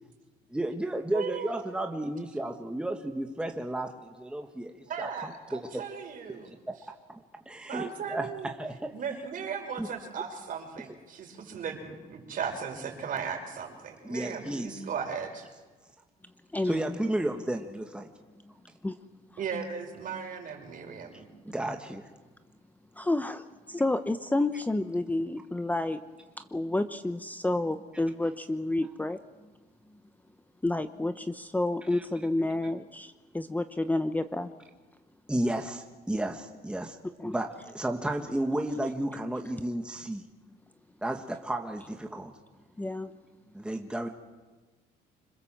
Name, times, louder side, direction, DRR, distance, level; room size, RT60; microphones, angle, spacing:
voice 1, 0.5-5.8 7.4-8.9 9.8-9.9 14.0-14.9 16.6-18.1 21.4-22.0 31.9-32.0 35.3-37.0 37.2-40.2 41.0-42.3 43.5-44.1, right 1 dB, 5° right, 4 dB, 1.6 m, -33 dB
voice 2, 1.1-1.6 4.9-6.5 7.7-8.5 8.9-15.5 19.4-21.3, right 6 dB, 55° right, 3 dB, 5.5 m, -37 dB
voice 3, 23.0-26.0 26.4-29.2 30.6-34.5 37.2-37.3 42.8-43.1, left 2 dB, 10° left, 10 dB, 0.9 m, -30 dB
26.0 x 21.0 x 7.6 m, 1.3 s
cardioid pair, 110°, 17 cm